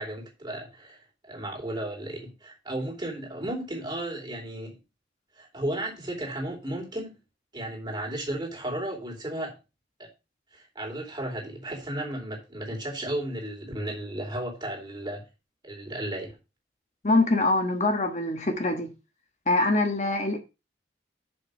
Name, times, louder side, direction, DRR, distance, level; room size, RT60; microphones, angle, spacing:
voice 1, 0.0-4.8 5.3-7.2 7.5-9.5 10.0-10.1 10.5-15.3 15.6-16.4, right 1 dB, 25° right, 2.9 m, -34 dB
voice 2, 17.0-18.9 19.5-20.4, left 2 dB, 40° left, 1.3 m, -24 dB
6.6 x 5.4 x 6.4 m
head